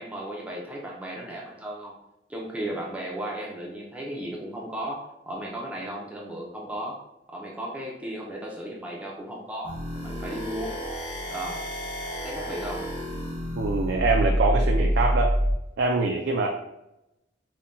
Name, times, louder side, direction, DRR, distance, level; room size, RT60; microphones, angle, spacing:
voice 1, 0.0-2.0 2.3-7.0 7.3-10.7 11.3-11.7 12.2-12.9 14.5-14.7, right 1 dB, 5° right, -3 dB, 0.5 m, -35 dB
sound 1, 9.6-15.6, equal, 30° left, 0.8 m, -27 dB
voice 2, 13.6-15.3 15.8-16.5, right 3 dB, 60° right, 1 dB, 0.4 m, -24 dB
5.4 x 2.2 x 2.6 m, 0.88 s
head